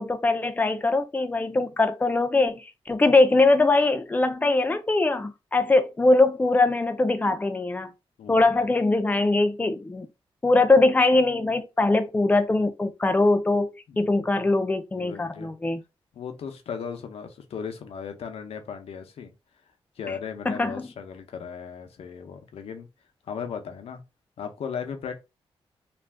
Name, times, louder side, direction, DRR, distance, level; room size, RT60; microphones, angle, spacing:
voice 1, 0.0-7.9 8.3-10.1 10.4-15.8 20.5-20.8, left 2 dB, 15° left, 0.4 m, -22 dB
voice 2, 13.9-14.4 15.0-15.5 16.1-19.3 20.0-22.9 23.2-24.0 24.4-25.2, left 6 dB, 80° left, 0.7 m, -36 dB
2.5 x 2.3 x 3.3 m
wide cardioid pair, 110°, 10 cm